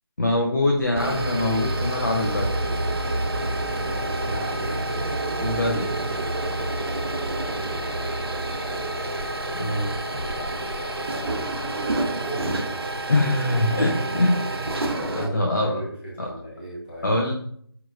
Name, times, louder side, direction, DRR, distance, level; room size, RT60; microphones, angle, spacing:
voice 1, 0.2-2.5 5.4-5.9 9.5-10.0 13.1-14.4 15.2-15.8 16.2-16.3 17.0-17.3, left 1 dB, 50° left, 0 dB, 0.5 m, -23 dB
sound 1, 0.8-15.3, right 2 dB, 70° right, 0.6 m, -28 dB
voice 2, 3.8-4.8 7.1-7.8 10.1-13.2 13.6-14.0 14.9-17.2, equal, 25° left, -6 dB, 1.2 m, -38 dB
4.4 x 3.1 x 2.4 m, 0.64 s
figure-of-eight pair, 175°, 13 cm